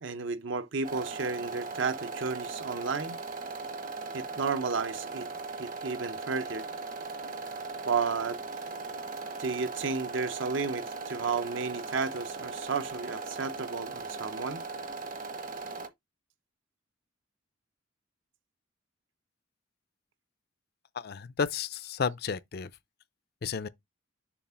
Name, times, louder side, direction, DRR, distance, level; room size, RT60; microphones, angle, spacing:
voice 1, 0.0-3.2 4.1-5.3 5.6-6.7 7.8-8.4 9.4-14.6, right 4 dB, 65° right, 0.7 m, -32 dB
sound 1, 0.8-15.9, right 3 dB, 45° right, 0.9 m, -39 dB
voice 2, 20.9-22.7 23.4-23.7, left 6 dB, 50° left, 0.4 m, -32 dB
7.1 x 2.4 x 5.5 m
head